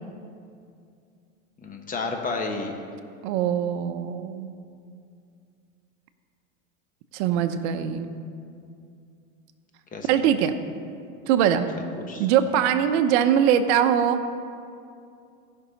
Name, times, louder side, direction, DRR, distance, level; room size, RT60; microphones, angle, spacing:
voice 1, 1.6-2.8 9.9-10.3 12.0-12.3, left 3 dB, 20° left, 3 dB, 1.1 m, -31 dB
voice 2, 3.2-4.5 7.1-8.1 10.1-10.5 11.3-11.7 12.2-14.2, right 9 dB, 55° right, 7 dB, 0.8 m, -22 dB
15.0 x 5.6 x 4.1 m, 2.4 s
hypercardioid pair, 110°, 40 cm